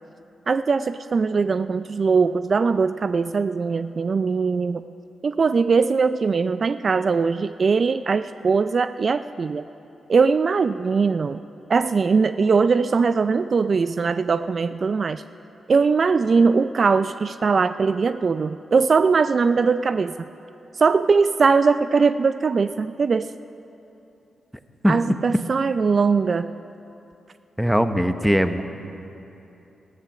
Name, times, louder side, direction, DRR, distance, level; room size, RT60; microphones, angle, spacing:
voice 1, 0.5-4.8 5.2-9.6 10.1-11.4 11.7-15.2 15.7-20.1 20.8-23.3 24.9-26.5, right 5 dB, 55° right, 12 dB, 0.3 m, -20 dB
voice 2, 27.6-28.6, equal, ahead, 9 dB, 0.9 m, -20 dB
14.0 x 13.0 x 6.1 m, 3.0 s
supercardioid pair, 50°, 0 cm